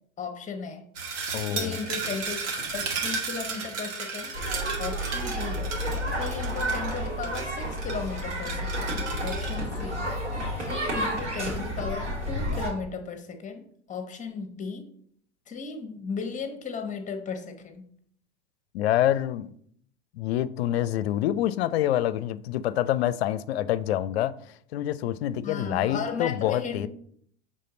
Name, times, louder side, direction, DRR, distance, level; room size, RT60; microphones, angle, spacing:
voice 1, 0.2-0.8 1.5-4.4 4.8-5.7 6.2-10.1 10.6-14.9 15.5-17.8 25.4-26.9, left 5 dB, 20° left, 6 dB, 1.0 m, -36 dB
sound 1, 0.9-9.6, right 5 dB, 50° right, 1.7 m, -34 dB
voice 2, 1.3-1.8 18.7-19.5 20.1-24.3 24.7-26.9, left 12 dB, 65° left, 16 dB, 0.5 m, -26 dB
sound 2, 4.3-12.7, equal, 75° right, 2.6 m, -31 dB
6.6 x 3.7 x 3.8 m, 0.64 s
figure-of-eight pair, 85°, 34 cm